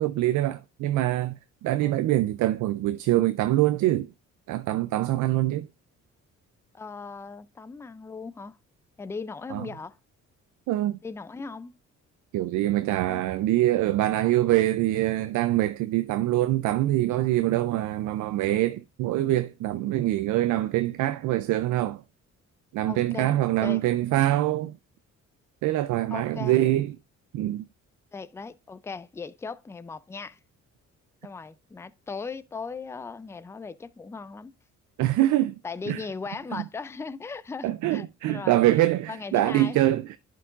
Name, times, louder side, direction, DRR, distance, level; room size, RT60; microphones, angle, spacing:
voice 1, 0.0-4.1 4.5-5.7 9.5-9.7 10.7-11.0 12.3-22.0 22.7-24.8 25.6-26.9 27.3-27.7 35.0-35.6 35.9-36.0 36.5-36.6 37.6-40.2, right 15 dB, 80° right, 0.4 m, -24 dB
voice 2, 6.7-8.6 9.0-10.0 11.0-11.7 13.1-13.2 22.9-23.4 23.6-23.8 26.1-26.6 28.1-30.4 31.2-34.5 35.6-38.6 39.1-39.8, left 4 dB, 10° left, 0.3 m, -38 dB
11.0 x 4.6 x 2.4 m
cardioid pair, 90°, 30 cm